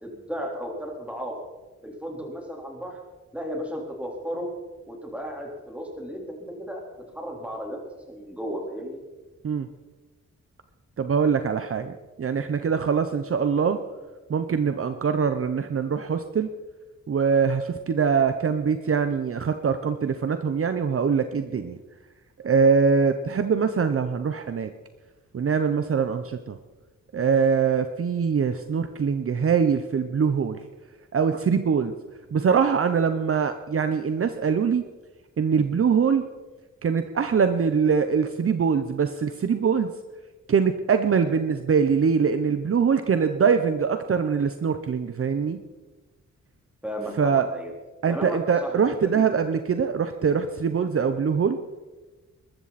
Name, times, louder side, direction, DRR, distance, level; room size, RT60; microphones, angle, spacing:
voice 1, 0.0-1.3 1.8-3.0 3.3-4.6 4.9-6.8 7.1-9.0 46.8-47.7 48.1-49.3, equal, 5° right, -1 dB, 3.9 m, -34 dB
voice 2, 11.0-13.8 14.3-16.5 17.1-21.8 22.4-24.7 25.3-26.5 27.1-30.6 31.1-31.9 32.3-34.8 35.4-36.3 36.8-39.9 40.5-45.6 47.2-47.5 48.0-51.6, right 6 dB, 50° right, 9 dB, 0.8 m, -23 dB
21.0 x 13.5 x 4.2 m, 1.2 s
wide cardioid pair, 115°, 29 cm